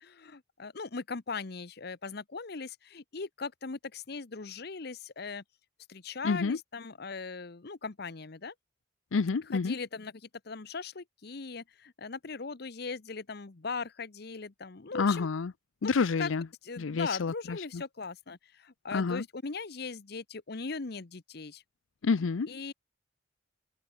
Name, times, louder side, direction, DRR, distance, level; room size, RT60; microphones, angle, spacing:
voice 1, 0.0-5.4 5.9-8.5 9.5-10.1 10.4-15.3 16.2-16.3 16.6-21.6 22.5-22.7, left 4 dB, 55° left, 0.9 m, -39 dB
voice 2, 6.2-6.6 9.1-9.8 14.9-15.5 15.8-16.5 16.8-17.8 18.9-19.2 22.0-22.5, left 4 dB, 85° left, 0.6 m, -28 dB
head